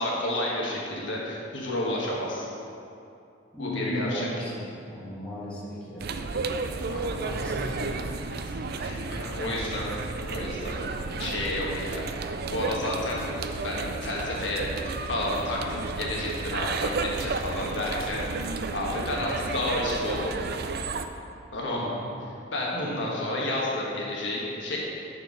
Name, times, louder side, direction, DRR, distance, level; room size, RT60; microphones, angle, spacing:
voice 1, 0.0-2.5 3.6-4.5 6.9-7.2 8.3-9.9 10.2-10.8 11.2-12.1 12.5-18.2 18.7-20.3 21.5-22.0 22.5-24.8, left 1 dB, 70° left, -4 dB, 1.4 m, -31 dB
voice 2, 3.5-6.1 6.6-8.0 8.9-9.1 9.4-9.8 21.7-22.1 22.7-23.0, left 1 dB, 5° left, -9 dB, 2.0 m, -37 dB
sound 1, 6.0-21.0, right 3 dB, 55° right, 0.4 m, -32 dB
10.5 x 4.5 x 5.3 m, 2.6 s
head